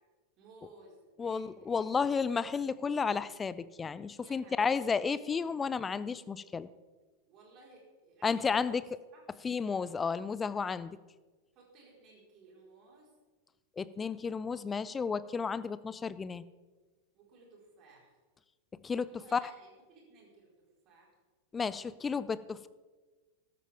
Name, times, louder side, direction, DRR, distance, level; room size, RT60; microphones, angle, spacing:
voice 1, 0.4-2.2 4.2-5.2 7.3-8.8 9.1-9.2 11.5-13.1 17.1-18.1 19.1-20.5 20.8-21.1, right 3 dB, 35° right, -2 dB, 4.4 m, -58 dB
voice 2, 1.2-6.7 8.2-8.8 9.4-11.0 13.8-16.4 18.8-19.4 21.5-22.7, left 5 dB, 15° left, 17 dB, 0.4 m, -32 dB
13.0 x 13.0 x 3.5 m, 1.3 s
figure-of-eight pair, 90°, 0 cm